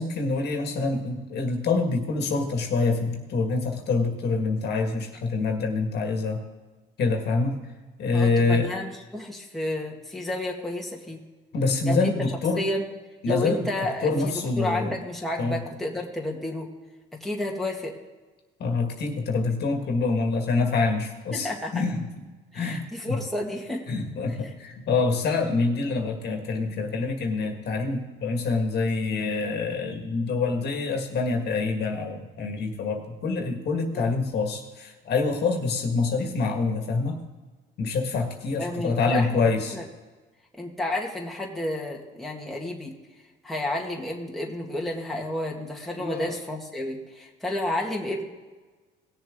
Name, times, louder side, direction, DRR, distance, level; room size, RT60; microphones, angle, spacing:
voice 1, 0.0-6.4 7.0-7.6 8.0-8.7 11.5-12.6 13.2-13.7 14.0-14.9 15.4-15.6 18.6-22.2 22.5-23.2 23.9-37.2 37.8-39.8 46.0-46.3, left 3 dB, 55° left, 3 dB, 1.8 m, -26 dB
voice 2, 8.1-11.2 11.9-12.1 12.6-12.9 13.3-16.7 17.2-18.0 21.3-21.8 22.5-23.8 33.9-34.1 38.6-39.4 39.7-39.8 40.6-42.9 43.4-48.2, left 1 dB, ahead, -2 dB, 1.9 m, -31 dB
18.5 x 7.0 x 3.8 m, 1.3 s
cardioid pair, 115°, 20 cm